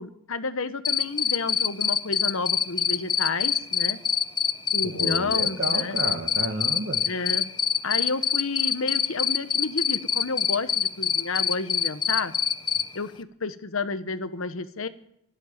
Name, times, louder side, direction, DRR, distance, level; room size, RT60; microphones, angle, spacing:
voice 1, 0.0-4.0 4.7-6.0 7.1-7.5 7.8-12.3 12.9-14.9, left 4 dB, 85° left, 12 dB, 1.1 m, -31 dB
Cricket, 0.8-12.8, left 7 dB, 20° left, 0.6 m, -23 dB
voice 2, 4.9-7.0, right 2 dB, 55° right, 5 dB, 1.6 m, -31 dB
12.5 x 12.0 x 9.0 m, 0.78 s
head